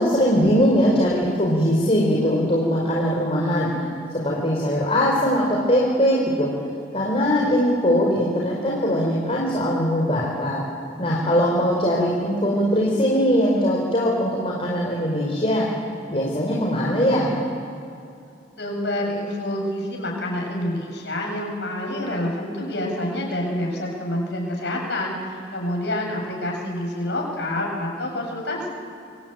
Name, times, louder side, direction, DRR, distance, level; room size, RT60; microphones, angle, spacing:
voice 1, 0.0-3.7 4.1-6.5 6.9-10.6 11.0-15.7 16.1-17.3, equal, 30° left, -3 dB, 4.4 m, -21 dB
voice 2, 18.6-28.7, left 1 dB, 65° left, 0 dB, 7.7 m, -27 dB
27.0 x 23.5 x 9.2 m, 2.6 s
head